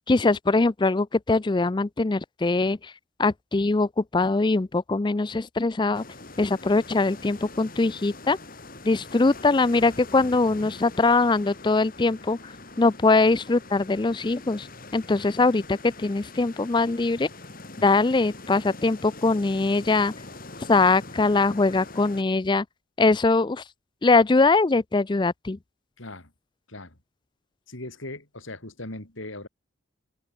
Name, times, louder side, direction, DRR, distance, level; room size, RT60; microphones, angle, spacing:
voice 1, 0.0-2.9 3.2-6.0 6.4-8.4 8.8-12.5 12.8-14.7 14.9-17.3 17.8-20.1 20.7-22.7 23.0-23.6 24.0-25.6, left 3 dB, 20° left, 0.4 m, -22 dB
sound 1, 5.9-22.2, left 2 dB, 45° left, 5.2 m, -43 dB
voice 2, 26.0-26.3 26.7-27.0 27.7-29.5, left 2 dB, 70° left, 3.9 m, -39 dB
head